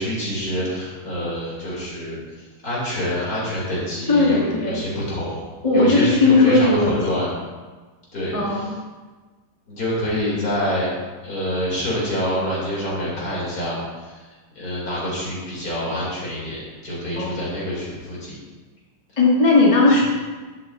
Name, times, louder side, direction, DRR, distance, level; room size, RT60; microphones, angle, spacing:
voice 1, 0.0-2.2 2.6-5.4 5.7-7.3 8.1-8.7 9.7-10.9 11.2-14.2 14.5-18.4, equal, 50° left, -6 dB, 3.4 m, -26 dB
voice 2, 4.1-4.8 5.6-7.2 8.3-8.7 17.2-17.3 19.2-20.0, left 3 dB, 20° left, -3 dB, 0.9 m, -17 dB
10.5 x 8.2 x 2.6 m, 1.3 s
omnidirectional pair, 2.1 m